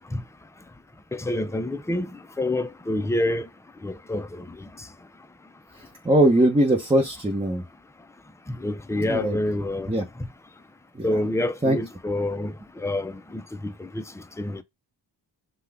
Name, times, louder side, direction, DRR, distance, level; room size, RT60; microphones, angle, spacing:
voice 1, 1.1-2.1 2.4-3.5 3.8-4.3 8.5-9.9 11.0-12.5 12.8-13.2 13.6-14.0 14.4-14.6, left 1 dB, 5° left, 0.3 m, -27 dB
voice 2, 6.0-7.6 9.1-9.4 9.9-10.0 10.9-11.1 11.6-11.8, right 1 dB, 15° right, 0.8 m, -20 dB
5.8 x 2.3 x 3.4 m
wide cardioid pair, 110°, 45 cm